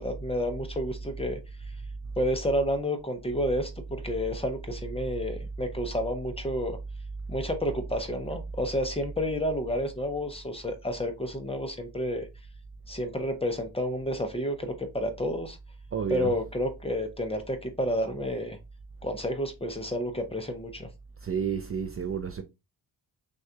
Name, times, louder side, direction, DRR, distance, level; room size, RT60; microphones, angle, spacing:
voice 1, 0.0-1.4 2.2-6.8 7.3-12.3 12.9-15.6 16.1-18.6 19.0-20.9, equal, 15° left, 0.6 m, -30 dB
voice 2, 15.9-16.3 21.2-22.4, right 7 dB, 35° right, 0.4 m, -30 dB
6.2 x 2.3 x 2.7 m
wide cardioid pair, 145°, 42 cm